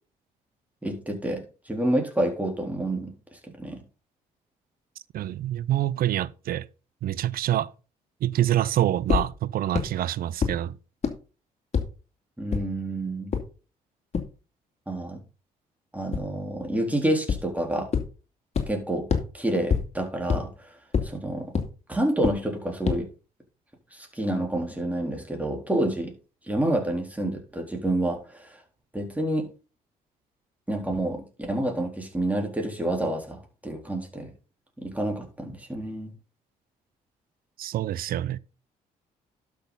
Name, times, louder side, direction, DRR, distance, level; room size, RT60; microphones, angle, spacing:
voice 1, 0.8-3.1 3.6-3.8 12.4-13.4 14.9-15.2 15.9-17.9 18.7-19.1 19.3-20.7 21.0-21.5 21.9-23.1 23.9-26.1 26.5-28.6 28.9-29.5 30.7-34.3 34.8-36.1, right 1 dB, 10° right, 4.0 m, -28 dB
voice 2, 5.1-6.7 7.0-7.7 8.2-10.7 37.6-38.4, right 12 dB, 70° right, 0.6 m, -26 dB
sound 1, 9.1-9.2 9.7-9.8 10.4-10.5 11.0-11.1 11.7-11.8 12.5-12.6 13.3-13.4 14.1-14.2 16.1-16.2 17.3-17.4 17.9-18.0 18.5-18.6 19.1-19.2 19.7-19.8 20.3-20.4 20.9-21.0 21.5-21.6 22.2-22.3 22.9-23.0, left 6 dB, 45° left, 2.6 m, -22 dB
12.0 x 6.5 x 4.1 m
supercardioid pair, 70°, 16 cm